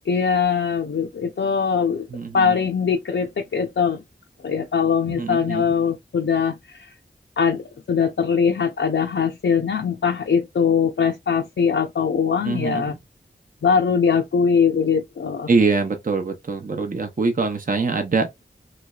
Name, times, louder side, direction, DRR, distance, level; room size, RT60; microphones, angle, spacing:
voice 1, 0.1-2.1 2.3-4.0 4.4-6.9 7.4-12.9 13.6-15.5, left 6 dB, 85° left, 0.5 m, -21 dB
voice 2, 2.1-2.5 5.1-5.6 12.4-13.0 15.5-18.3, right 4 dB, 45° right, 0.6 m, -23 dB
3.2 x 3.0 x 2.3 m
wide cardioid pair, 55°, 19 cm